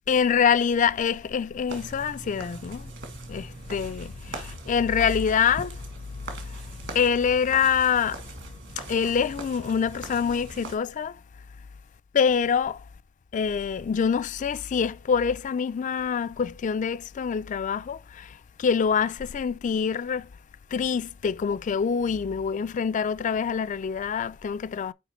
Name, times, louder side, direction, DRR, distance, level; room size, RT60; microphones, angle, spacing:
voice 1, 0.1-2.9 3.3-5.8 6.9-8.2 8.9-11.2 12.1-12.8 13.3-20.3 20.7-24.9, left 6 dB, 40° left, 0.3 m, -25 dB
sound 1, 1.7-10.8, right 3 dB, 65° right, 1.9 m, -41 dB
6.4 x 4.9 x 3.1 m
head